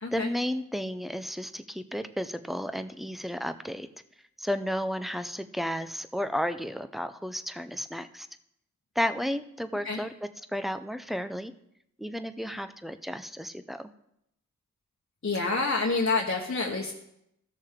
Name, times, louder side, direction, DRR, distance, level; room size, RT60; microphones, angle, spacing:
voice 1, 0.1-3.9 4.4-8.3 9.0-11.5 12.0-13.9, equal, ahead, 10 dB, 0.6 m, -33 dB
voice 2, 15.2-16.9, left 3 dB, 45° left, -1 dB, 1.2 m, -27 dB
15.0 x 6.4 x 3.7 m, 0.78 s
cardioid pair, 40°, 32 cm